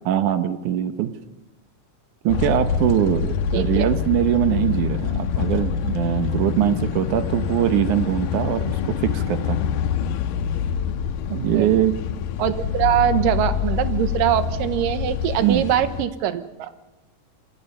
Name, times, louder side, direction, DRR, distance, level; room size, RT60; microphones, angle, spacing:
voice 1, 0.1-1.1 2.2-8.8 9.0-9.6 11.3-11.9 15.4-15.7, right 11 dB, 70° right, 10 dB, 2.4 m, -22 dB
sound 1, 2.3-16.1, left 8 dB, 85° left, 2.6 m, -26 dB
voice 2, 3.5-3.9 11.5-11.7 12.4-16.7, right 10 dB, 90° right, 11 dB, 2.8 m, -22 dB
27.5 x 23.5 x 5.5 m, 1.1 s
omnidirectional pair, 3.8 m